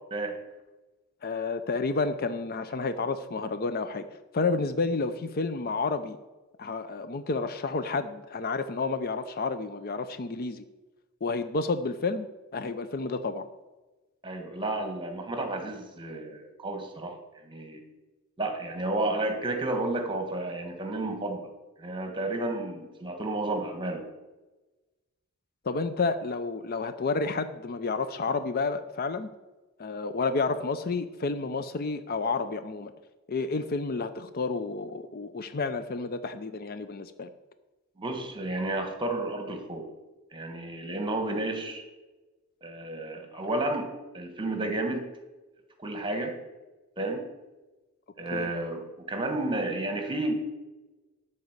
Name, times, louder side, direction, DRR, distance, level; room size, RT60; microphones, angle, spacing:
voice 1, 1.2-4.1 4.3-6.2 6.6-10.6 11.2-12.3 12.5-13.5 25.6-29.3 29.8-32.9 33.3-37.3 48.3-48.5, left 4 dB, 45° left, 11 dB, 0.5 m, -30 dB
voice 2, 14.2-17.8 18.4-21.5 21.8-24.1 38.0-39.9 40.3-41.8 42.6-45.1 45.8-46.4 47.0-47.2 48.2-50.3, right 2 dB, 20° right, 5 dB, 1.4 m, -32 dB
12.0 x 4.2 x 8.0 m, 1.2 s
head